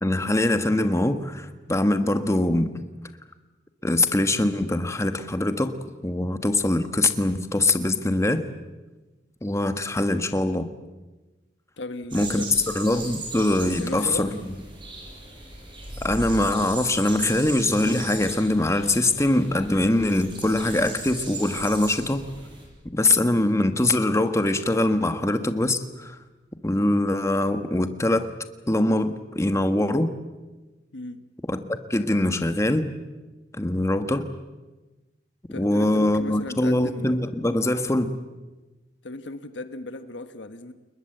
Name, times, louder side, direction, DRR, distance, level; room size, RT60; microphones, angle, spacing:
voice 1, 0.0-2.7 3.8-5.8 6.0-8.4 9.4-10.7 12.1-14.3 16.0-22.3 22.9-26.2 26.6-28.3 28.7-30.1 31.5-32.9 33.5-34.3 35.4-38.1, left 1 dB, 15° left, 8 dB, 1.4 m, -23 dB
voice 2, 11.8-12.6 13.8-14.4 30.9-31.2 35.5-37.2 39.0-40.7, left 2 dB, 75° left, 9 dB, 1.5 m, -36 dB
sound 1, 12.1-22.7, right 2 dB, 25° right, 7.8 m, -38 dB
29.5 x 21.0 x 7.9 m, 1.2 s
head